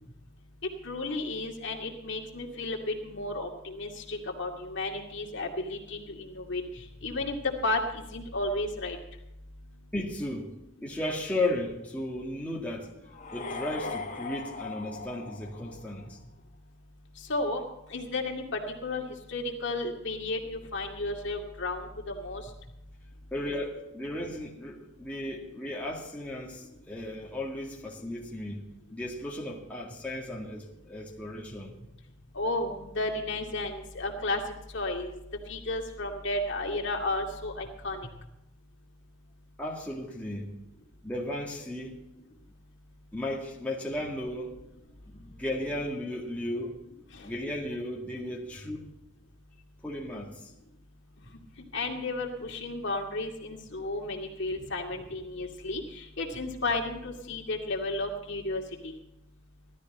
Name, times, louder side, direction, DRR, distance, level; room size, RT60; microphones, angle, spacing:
voice 1, 0.8-9.0 17.3-17.6 17.9-19.0 19.3-22.4 32.3-34.4 34.7-35.1 35.5-38.1 47.1-47.5 51.7-58.9, left 2 dB, 60° left, 2.3 m, -33 dB
voice 2, 9.9-10.5 10.8-12.9 13.3-16.2 23.3-28.6 28.9-31.7 38.0-38.1 39.6-40.5 41.0-42.0 43.1-44.6 45.1-46.8 47.2-48.8 49.8-50.3 54.6-54.7, left 1 dB, 5° left, 2.0 m, -35 dB
sound 1, 13.1-16.1, left 4 dB, 35° left, 1.3 m, -39 dB
17.0 x 12.5 x 4.2 m
head